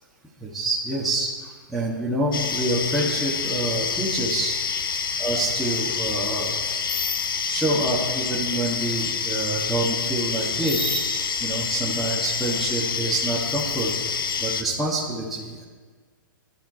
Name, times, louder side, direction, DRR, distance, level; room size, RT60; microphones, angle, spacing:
voice 1, 0.4-4.6 5.2-6.5 7.5-13.9 14.4-15.6, right 2 dB, ahead, -9 dB, 2.5 m, -27 dB
sound 1, 2.3-14.6, left 6 dB, 85° left, 0.9 m, -27 dB
21.0 x 13.0 x 3.4 m, 1.5 s
hypercardioid pair, 125°, 11 cm